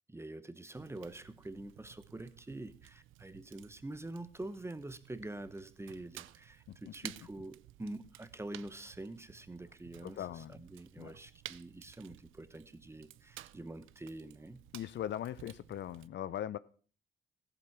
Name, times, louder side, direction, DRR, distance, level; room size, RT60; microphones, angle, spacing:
voice 1, 0.1-14.6, right 2 dB, 15° right, 1.0 m, -46 dB
Fire, 0.7-16.1, right 15 dB, 85° right, 0.5 m, -54 dB
voice 2, 6.7-7.1 10.0-10.6 11.0-11.1 14.7-16.6, left 11 dB, 65° left, 0.6 m, -40 dB
14.5 x 8.0 x 5.8 m
cardioid pair, 90°, 20 cm